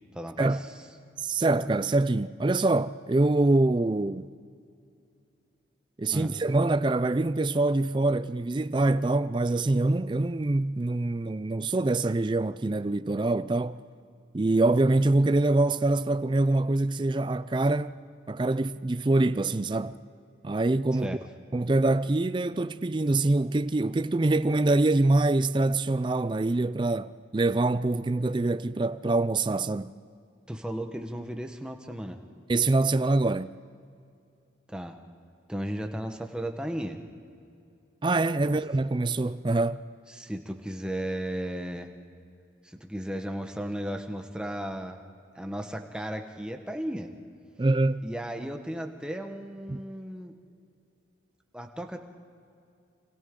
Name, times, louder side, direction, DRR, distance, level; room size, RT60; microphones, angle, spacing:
voice 1, 0.1-0.8 6.1-6.3 20.9-21.2 30.5-32.2 34.7-35.0 35.5-37.0 38.4-38.6 40.1-41.9 42.6-45.0 45.3-47.1 48.0-50.4 51.5-52.0, equal, 5° right, 1.1 m, -35 dB
voice 2, 1.2-4.3 6.0-13.8 14.3-18.0 18.3-20.0 20.4-21.2 21.5-29.9 32.5-33.5 38.0-39.8 47.6-48.0 49.7-49.8, right 2 dB, 25° right, 0.4 m, -25 dB
30.0 x 26.0 x 3.8 m
head